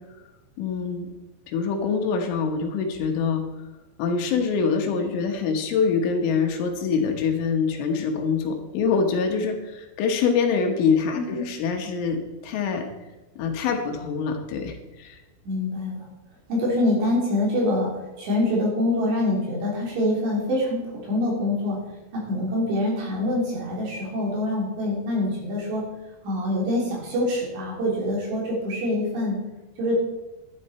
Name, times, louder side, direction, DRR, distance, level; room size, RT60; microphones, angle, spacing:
voice 1, 0.6-1.1 1.5-3.4 4.0-12.8 13.4-15.2, left 5 dB, 75° left, 3 dB, 3.6 m, -25 dB
voice 2, 11.1-11.5 15.5-16.1 16.5-17.9 18.2-21.8 22.1-25.8 26.2-29.4 29.8-29.9, left 1 dB, 60° right, -3 dB, 5.3 m, -25 dB
11.5 x 11.5 x 4.3 m, 1.1 s
omnidirectional pair, 5.9 m